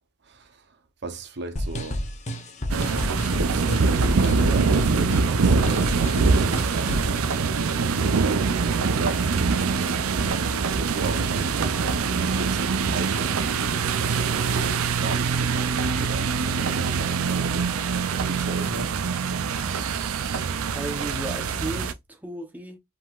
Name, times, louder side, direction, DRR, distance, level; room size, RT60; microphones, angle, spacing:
voice 1, 0.2-0.6 1.0-2.0 3.4-7.2 7.9-8.4 8.7-9.9 10.8-18.9, right 2 dB, 55° right, 0.8 m, -36 dB
sound 1, 1.6-7.2, equal, 35° left, 0.8 m, -30 dB
sound 2, 2.7-21.9, right 5 dB, 85° right, 0.5 m, -24 dB
voice 2, 20.7-22.8, right 1 dB, 10° right, 0.8 m, -34 dB
5.2 x 3.8 x 2.4 m
head